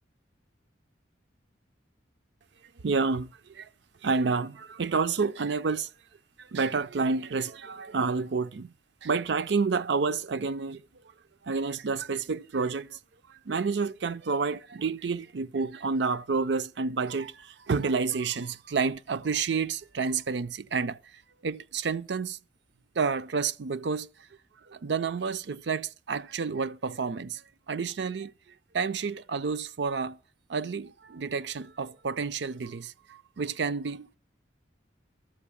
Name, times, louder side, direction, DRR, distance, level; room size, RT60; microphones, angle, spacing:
voice 1, 2.8-3.7 4.0-5.9 6.4-8.7 9.0-10.8 11.4-13.0 13.2-22.4 23.0-24.1 24.6-28.3 28.7-30.2 30.5-34.1, right 4 dB, 65° right, 0.5 m, -29 dB
13.0 x 5.5 x 8.4 m
head